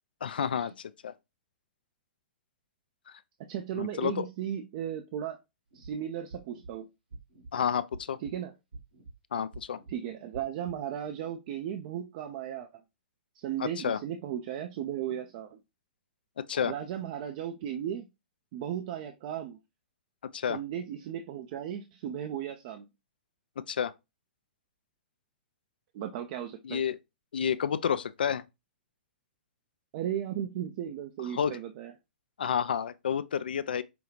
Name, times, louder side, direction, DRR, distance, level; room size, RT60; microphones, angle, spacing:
voice 1, 0.2-1.1 3.1-3.2 3.8-4.3 7.5-8.2 9.3-9.8 13.6-14.0 16.4-16.7 20.3-20.6 23.7-23.9 26.6-27.0 27.3-28.4 31.3-31.6 32.4-33.8, left 8 dB, 70° left, 0.3 m, -30 dB
voice 2, 3.5-5.4 5.7-6.9 8.2-8.5 9.9-12.7 13.3-15.6 16.6-18.1 18.5-19.6 20.5-22.9 25.9-26.8 29.9-31.9, right 10 dB, 45° right, 0.5 m, -36 dB
sound 1, 5.7-5.9 6.3-6.7 7.1-7.5 7.9-8.3 8.7-9.1 9.5-9.9 10.3-10.8, right 3 dB, 75° right, 1.4 m, -46 dB
5.1 x 2.3 x 3.0 m
figure-of-eight pair, 110°, 5 cm